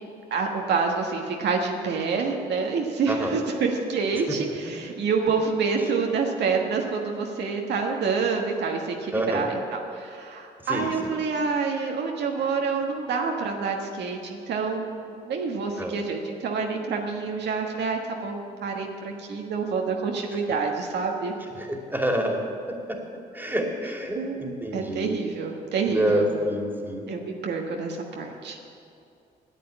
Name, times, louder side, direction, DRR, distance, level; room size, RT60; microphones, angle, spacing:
voice 1, 0.3-21.3 24.1-26.3 27.1-28.6, right 5 dB, 70° right, 1 dB, 1.4 m, -27 dB
voice 2, 3.1-3.4 9.1-9.5 10.7-10.9 15.8-15.9 21.6-22.4 22.9-23.0 23.3-25.2 25.9-27.1, equal, 10° right, 1 dB, 2.5 m, -27 dB
9.9 x 8.4 x 9.0 m, 2.5 s
supercardioid pair, 55°, 18 cm